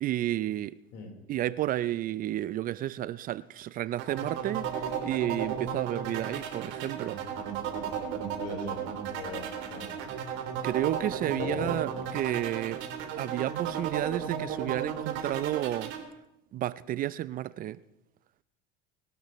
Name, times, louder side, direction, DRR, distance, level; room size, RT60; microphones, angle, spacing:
voice 1, 0.0-0.8 1.3-7.2 10.6-12.8 13.2-15.9 16.5-17.8, right 13 dB, 45° right, 17 dB, 0.5 m, -31 dB
sound 1, 4.0-16.0, right 8 dB, 65° right, 3.1 m, -34 dB
voice 2, 8.4-8.8 9.1-10.0 11.4-11.9, left 6 dB, 60° left, 2 dB, 4.1 m, -39 dB
24.5 x 12.0 x 3.1 m, 0.85 s
supercardioid pair, 105°, 21 cm